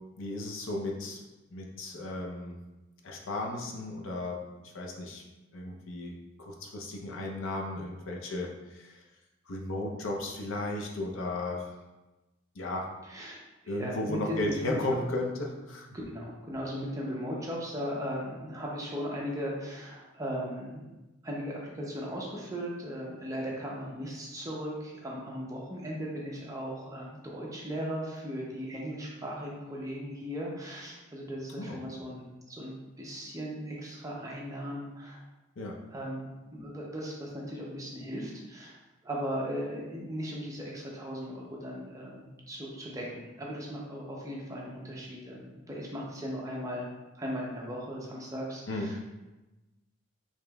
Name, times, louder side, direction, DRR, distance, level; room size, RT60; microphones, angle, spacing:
voice 1, 0.2-1.2 1.5-2.6 3.0-5.2 5.5-9.0 9.5-11.7 12.5-12.9 13.7-15.9 31.6-31.8 35.6-35.8 48.7-48.9, left 2 dB, 70° left, 0 dB, 0.6 m, -35 dB
voice 2, 13.0-13.4 13.6-15.0 16.1-20.9 21.2-35.2 35.9-46.9 47.1-49.0, equal, 15° right, -3 dB, 0.6 m, -37 dB
5.0 x 2.9 x 2.2 m, 1.1 s
head